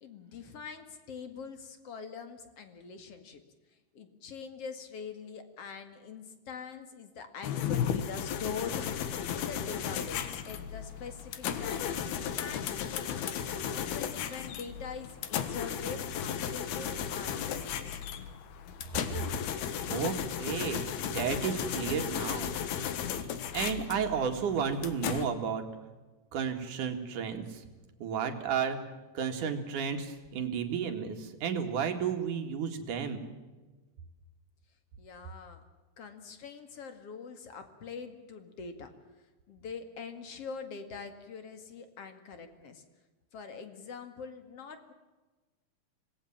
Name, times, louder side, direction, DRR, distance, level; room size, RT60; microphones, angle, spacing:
voice 1, 0.0-3.4 3.9-13.3 13.7-17.9 35.0-35.6 36.0-38.9 39.5-42.9 43.3-44.9, left 5 dB, 45° left, 8 dB, 2.6 m, -44 dB
sound 1, 7.4-25.3, left 8 dB, 70° left, 3.3 m, -35 dB
voice 2, 19.9-22.5 23.5-25.6 26.3-27.6 28.0-28.8 29.2-33.2, right 7 dB, 55° right, 5 dB, 3.3 m, -32 dB
26.0 x 19.0 x 7.4 m, 1.2 s
omnidirectional pair, 4.6 m